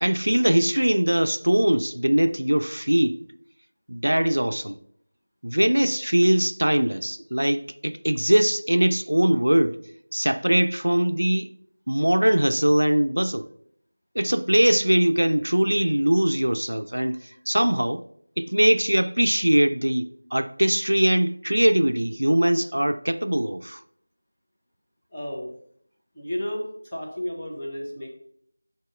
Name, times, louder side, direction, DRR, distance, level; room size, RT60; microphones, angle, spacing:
voice 1, 0.0-3.2 3.9-4.8 5.4-9.8 10.1-11.5 11.9-13.5 14.2-17.2 17.5-18.0 18.4-23.8, right 1 dB, 85° right, 0.4 m, -21 dB
voice 2, 25.1-25.5 26.1-28.1, left 1 dB, 10° left, 0.9 m, -32 dB
7.4 x 2.9 x 4.9 m
figure-of-eight pair, 175°, 0 cm